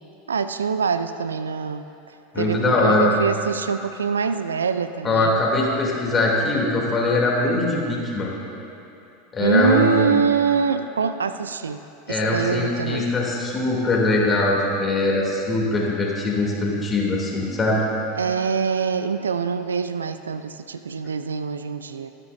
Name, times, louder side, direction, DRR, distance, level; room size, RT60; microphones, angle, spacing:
voice 1, 0.3-1.9 2.3-5.4 9.4-11.8 12.1-13.1 18.2-22.1, right 6 dB, 85° right, 11 dB, 0.4 m, -24 dB
voice 2, 2.3-3.1 5.0-8.3 9.3-10.2 12.1-17.8, left 2 dB, 25° left, -2 dB, 2.7 m, -22 dB
22.0 x 9.9 x 2.6 m, 2.9 s
hypercardioid pair, 85°, 0 cm